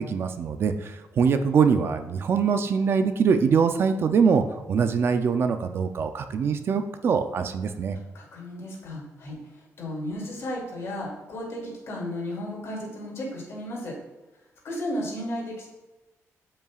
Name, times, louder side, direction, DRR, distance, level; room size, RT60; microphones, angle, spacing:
voice 1, 0.0-8.0, right 6 dB, 45° right, 8 dB, 0.5 m, -23 dB
voice 2, 8.1-9.5 9.8-13.9 14.6-15.7, left 1 dB, 55° left, -3 dB, 2.6 m, -34 dB
12.5 x 5.5 x 2.4 m, 1.1 s
wide cardioid pair, 170°, 6 cm